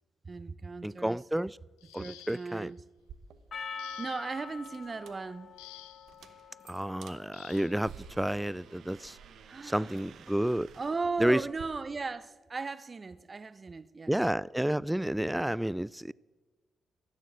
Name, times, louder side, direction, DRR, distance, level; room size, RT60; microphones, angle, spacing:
voice 1, 0.2-1.2 2.0-2.8 3.7-5.5 9.5-10.0 10.8-14.1, right 4 dB, 40° right, 0.7 m, -37 dB
voice 2, 0.8-1.6 1.9-2.7 6.7-9.2 9.6-10.7 11.2-11.4 14.1-16.1, right 1 dB, 5° right, 0.3 m, -30 dB
sound 1, 1.8-2.7 3.8-4.4 5.6-6.2 7.3-7.8 9.0-9.1 9.7-9.9, left 15 dB, 85° left, 0.5 m, -52 dB
sound 2, 3.0-11.7, right 7 dB, 65° right, 0.9 m, -53 dB
Percussion, 3.5-8.1, left 5 dB, 55° left, 0.9 m, -45 dB
15.5 x 7.6 x 7.5 m
hypercardioid pair, 45°, 0 cm